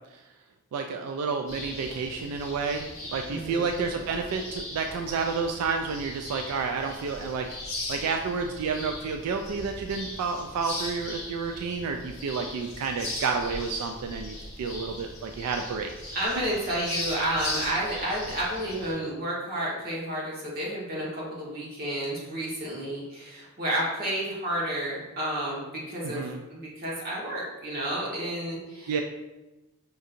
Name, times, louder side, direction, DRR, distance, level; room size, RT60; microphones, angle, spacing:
voice 1, 0.7-7.5 7.9-15.9 26.0-26.4 28.9-29.0, right 5 dB, 90° right, 7 dB, 0.3 m, -30 dB
sound 1, 1.5-18.9, left 1 dB, 30° left, 1.2 m, -39 dB
voice 2, 3.3-3.7 16.1-28.9, right 1 dB, 45° right, -6 dB, 1.2 m, -31 dB
5.1 x 2.7 x 2.5 m, 1.0 s
head